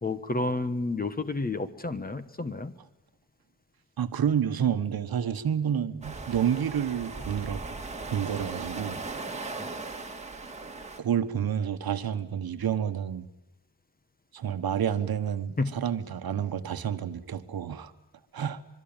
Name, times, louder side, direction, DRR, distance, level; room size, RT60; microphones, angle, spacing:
voice 1, 0.0-2.7 9.6-9.7 15.6-15.8, left 2 dB, 20° left, 11 dB, 1.3 m, -30 dB
voice 2, 4.0-7.6 8.1-9.0 11.0-13.3 14.3-17.9 18.3-18.6, right 8 dB, 55° right, 10 dB, 1.4 m, -29 dB
sound 1, 6.0-11.0, right 3 dB, 15° right, 1.9 m, -38 dB
25.0 x 23.5 x 9.1 m, 0.89 s
wide cardioid pair, 160°, 42 cm